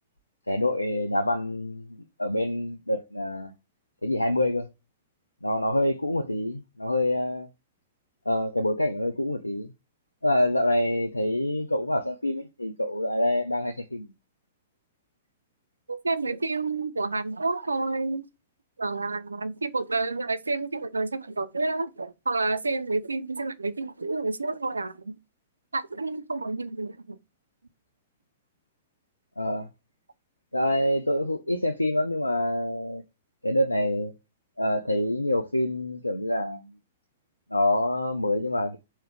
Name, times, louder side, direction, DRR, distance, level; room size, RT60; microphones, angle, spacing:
voice 1, 0.5-1.8 2.2-3.5 4.0-4.7 5.4-7.5 8.3-9.7 10.2-14.1 29.4-29.7 30.5-33.0 33.4-34.1 34.6-36.7 37.5-38.8, left 1 dB, 85° left, 0.4 m, -26 dB
voice 2, 15.9-18.3 18.8-25.2 25.7-27.2, right 3 dB, 75° right, 0.4 m, -29 dB
3.6 x 3.0 x 3.3 m
figure-of-eight pair, 110°, 0 cm